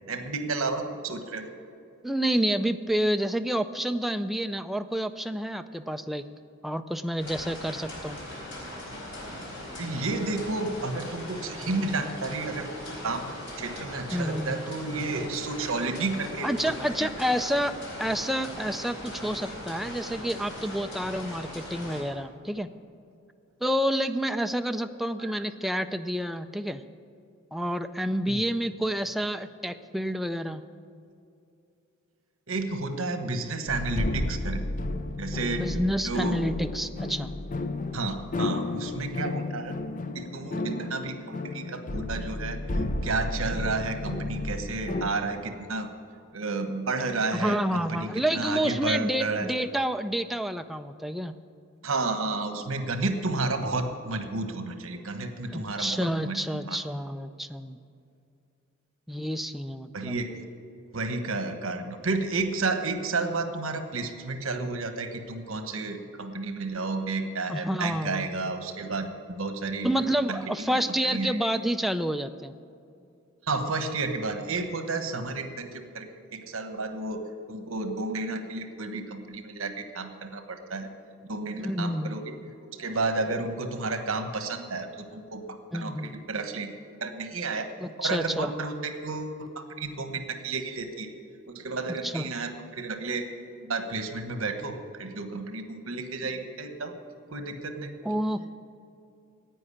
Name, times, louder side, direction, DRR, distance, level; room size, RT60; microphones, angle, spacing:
voice 1, 0.1-1.5 9.8-13.3 13.6-16.7 17.0-17.1 25.2-25.3 28.3-28.4 32.5-34.6 35.2-35.7 36.0-36.4 37.9-39.8 40.1-45.9 46.3-49.5 51.8-56.8 59.9-60.3 60.9-69.9 70.3-70.8 71.1-71.4 73.5-77.2 77.5-80.9 81.3-82.4 82.6-87.7 88.0-91.1 91.5-93.3 93.6-96.9 97.3-97.9, right 3 dB, 80° right, 7 dB, 1.2 m, -32 dB
voice 2, 2.0-6.2 6.6-8.2 14.1-14.6 16.4-22.7 23.6-26.8 27.5-30.6 35.6-37.3 40.5-40.6 47.3-51.4 55.5-57.8 59.1-60.2 67.5-68.3 69.8-72.5 81.6-82.3 85.7-86.1 87.8-88.5 91.9-92.3 98.0-98.5, equal, ahead, 8 dB, 0.4 m, -29 dB
sound 1, 7.2-22.0, left 1 dB, 60° left, 4.2 m, -40 dB
sound 2, 33.7-45.1, left 2 dB, 40° left, 0.6 m, -32 dB
11.0 x 9.0 x 9.9 m, 2.5 s
head